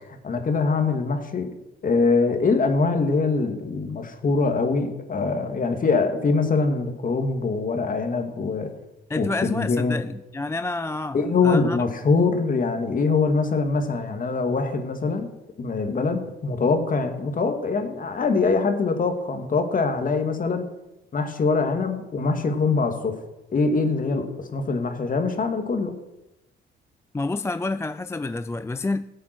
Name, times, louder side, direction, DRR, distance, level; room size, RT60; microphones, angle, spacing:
voice 1, 0.1-1.5 1.8-8.7 9.2-10.0 11.1-15.3 15.6-20.7 21.1-23.1 23.5-26.0, left 4 dB, 45° left, 6 dB, 2.3 m, -23 dB
voice 2, 9.1-11.8 27.1-29.1, left 3 dB, 15° left, 13 dB, 0.4 m, -29 dB
16.5 x 8.3 x 6.1 m, 0.95 s
cardioid pair, 90°, 20 cm